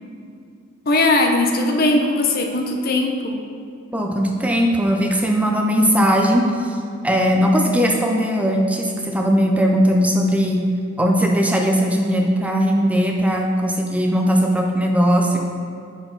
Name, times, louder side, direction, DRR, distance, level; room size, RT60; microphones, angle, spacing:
voice 1, 0.9-3.4, left 2 dB, 50° left, 3 dB, 0.7 m, -19 dB
voice 2, 3.9-6.8 7.0-10.6 11.0-15.4, equal, 5° right, 0 dB, 0.5 m, -18 dB
10.0 x 4.5 x 3.9 m, 2.4 s
head